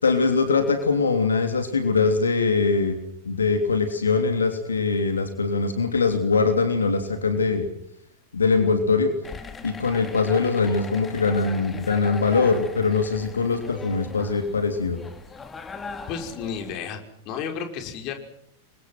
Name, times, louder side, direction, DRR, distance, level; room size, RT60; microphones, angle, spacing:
voice 1, 0.0-2.9 3.2-7.7 8.3-9.1 9.6-15.0, left 4 dB, 75° left, 6 dB, 3.2 m, -22 dB
sound 1, 9.2-16.7, left 4 dB, 15° left, 2.7 m, -39 dB
voice 2, 16.1-17.0 17.3-18.1, left 7 dB, 40° left, 5 dB, 5.5 m, -32 dB
29.5 x 24.5 x 6.0 m, 0.71 s
figure-of-eight pair, 90°, 0 cm